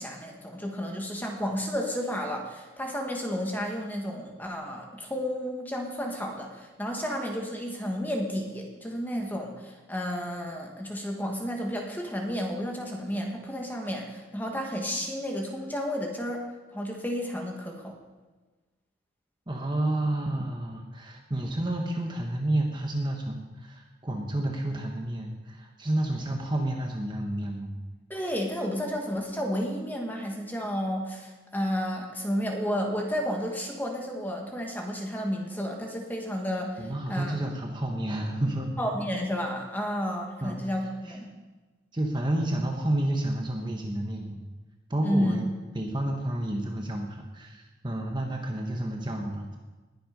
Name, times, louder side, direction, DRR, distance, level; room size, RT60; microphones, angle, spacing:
voice 1, 0.0-16.5 16.7-17.9 28.1-37.3 38.8-41.3 45.0-45.4, equal, 10° left, 1 dB, 1.9 m, -32 dB
voice 2, 19.5-27.7 36.8-38.7 40.4-40.5 41.0-41.2 41.9-44.4 44.9-45.4 45.7-49.6, right 1 dB, 25° right, 1 dB, 1.3 m, -30 dB
20.5 x 7.8 x 5.3 m, 1.2 s
head